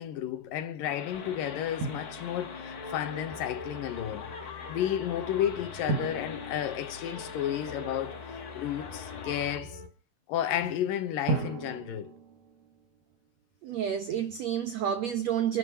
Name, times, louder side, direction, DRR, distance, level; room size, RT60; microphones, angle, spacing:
voice 1, 0.0-4.3 4.7-8.2 8.6-9.8 10.3-12.1, left 10 dB, 70° left, 2.6 m, -32 dB
sound 1, 0.8-9.6, left 5 dB, 55° left, 1.0 m, -44 dB
sound 2, 1.1-9.9, left 4 dB, 15° left, 1.3 m, -44 dB
Drum, 1.8-2.9 5.9-7.7 11.3-13.3, right 3 dB, 50° right, 3.5 m, -36 dB
voice 2, 13.6-15.6, right 9 dB, 80° right, 1.5 m, -29 dB
28.5 x 11.0 x 3.0 m
omnidirectional pair, 4.4 m